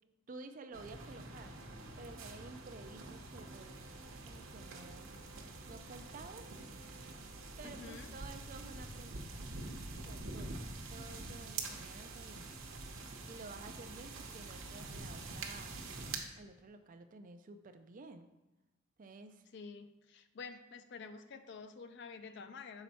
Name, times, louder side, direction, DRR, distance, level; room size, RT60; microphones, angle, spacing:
voice 1, 0.3-1.5 2.0-3.8 4.2-5.2 5.7-6.5 7.6-9.5 10.1-12.5 13.2-15.9 16.4-18.3 19.0-19.4, right 3 dB, 40° right, 8 dB, 0.4 m, -52 dB
sound 1, 0.7-16.2, right 3 dB, 90° right, 0.8 m, -46 dB
voice 2, 7.6-8.1 19.5-22.8, left 5 dB, 60° left, 10 dB, 0.4 m, -49 dB
5.8 x 4.2 x 4.1 m, 1.0 s
head